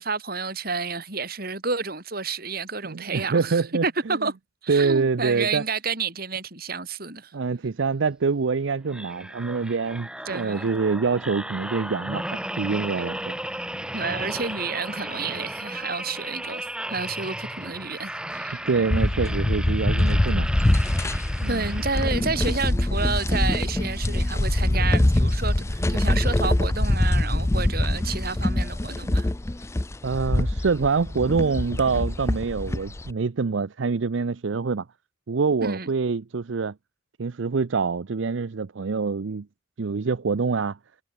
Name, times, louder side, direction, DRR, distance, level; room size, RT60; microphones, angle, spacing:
voice 1, 0.0-4.3 4.6-7.3 10.3-10.7 13.9-18.6 21.5-29.3 35.6-35.9, right 4 dB, 50° right, 4.3 m, -30 dB
voice 2, 2.8-4.2 4.7-5.6 7.3-13.4 18.7-20.5 21.4-21.7 30.0-34.8 35.3-36.7 37.2-39.5 39.8-40.8, right 4 dB, 75° right, 0.6 m, -25 dB
sound 1, 8.9-22.5 23.0-23.2, right 1 dB, 5° right, 3.8 m, -35 dB
sound 2, 18.9-33.1, left 1 dB, 15° left, 0.4 m, -24 dB
head